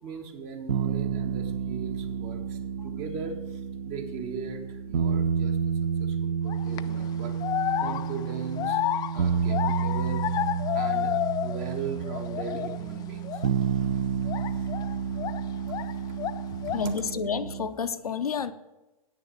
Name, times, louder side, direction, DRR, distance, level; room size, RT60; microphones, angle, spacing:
voice 1, 0.0-2.6 2.8-3.6 3.9-5.6 6.0-7.3 7.8-8.8 9.1-10.2 10.7-13.4 14.5-14.7 16.1-16.2 16.7-16.9, right 5 dB, 40° right, 4 dB, 1.7 m, -38 dB
sound 1, 0.7-17.7, right 7 dB, 75° right, 0.6 m, -30 dB
sound 2, 6.5-6.8 7.4-11.8 12.0-12.8 13.2-13.5 14.3-15.9 16.2-17.0, left 12 dB, 20° left, 0.3 m, -30 dB
voice 2, 16.7-18.5, left 5 dB, 85° left, 10 dB, 0.7 m, -29 dB
9.0 x 6.7 x 6.6 m, 1.1 s
figure-of-eight pair, 100°, 19 cm